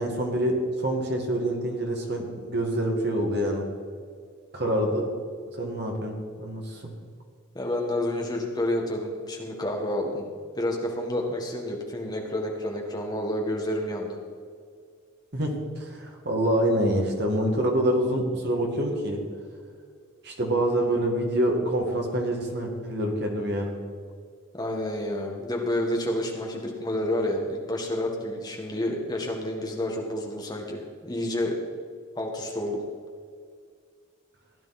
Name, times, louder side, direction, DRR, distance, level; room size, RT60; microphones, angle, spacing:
voice 1, 0.0-3.7 4.5-5.1 5.6-6.9 15.3-19.2 20.2-23.8, right 1 dB, 50° right, 1 dB, 2.1 m, -26 dB
voice 2, 7.5-10.3 10.5-14.2 24.5-31.6 32.1-32.8, left 1 dB, 20° left, 0 dB, 1.7 m, -29 dB
16.0 x 10.5 x 4.3 m, 2.1 s
head